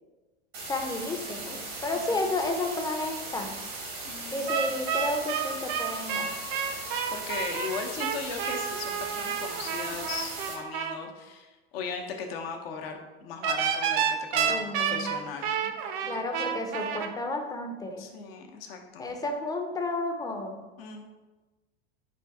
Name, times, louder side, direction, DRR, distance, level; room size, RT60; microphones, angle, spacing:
sound 1, 0.5-10.5, right 3 dB, 85° right, 1.3 m, -38 dB
voice 1, 0.7-3.6 4.3-6.3 14.5-15.1 16.1-18.1 19.0-20.6, left 2 dB, 10° left, 3 dB, 0.5 m, -32 dB
voice 2, 1.2-1.6 1.9-2.3 4.0-4.7 7.1-14.1 14.3-15.7 16.0-16.4 18.0-19.1 20.8-21.0, left 5 dB, 70° left, 3 dB, 0.7 m, -38 dB
sound 2, 4.5-11.0 13.4-17.1, right 8 dB, 55° right, 0.6 m, -30 dB
4.4 x 2.5 x 3.4 m, 1.2 s
hypercardioid pair, 95°, 31 cm